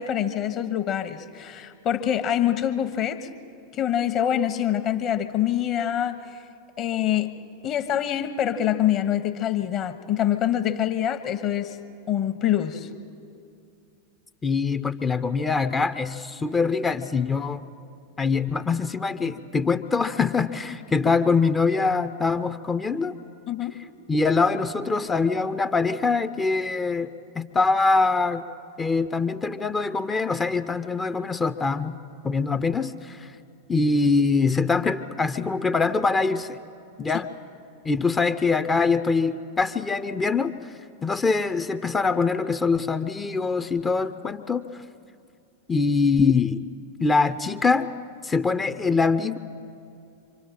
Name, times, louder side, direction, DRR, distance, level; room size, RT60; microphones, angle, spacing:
voice 1, 0.0-3.3 3.7-6.2 6.8-7.3 7.6-11.8 12.1-12.9 23.5-23.8, left 10 dB, 35° left, 10 dB, 1.2 m, -25 dB
voice 2, 14.4-17.7 18.2-23.1 24.1-28.4 28.8-32.0 32.2-33.3 33.7-36.6 37.0-37.3 37.8-40.7 41.0-44.8 45.7-46.6 47.0-47.9 48.2-49.4, left 4 dB, 15° left, 12 dB, 0.7 m, -23 dB
26.0 x 25.5 x 4.3 m, 2.5 s
figure-of-eight pair, 90°, 0 cm